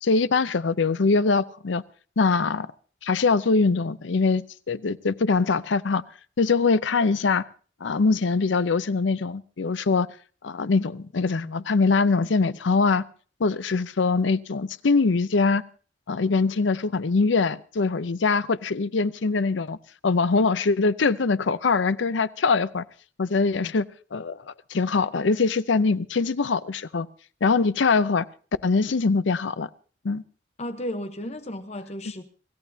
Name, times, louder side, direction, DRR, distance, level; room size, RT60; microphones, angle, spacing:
voice 1, 0.0-1.8 2.2-2.7 3.0-6.0 6.4-7.4 7.8-10.1 10.4-13.1 13.4-15.6 16.1-19.8 20.0-22.8 23.2-23.9 24.1-24.4 24.7-27.1 27.4-28.2 28.6-29.7 30.0-30.2, left 4 dB, 75° left, 0.6 m, -23 dB
voice 2, 30.6-32.3, left 1 dB, 35° left, 0.9 m, -34 dB
26.0 x 14.5 x 2.7 m
head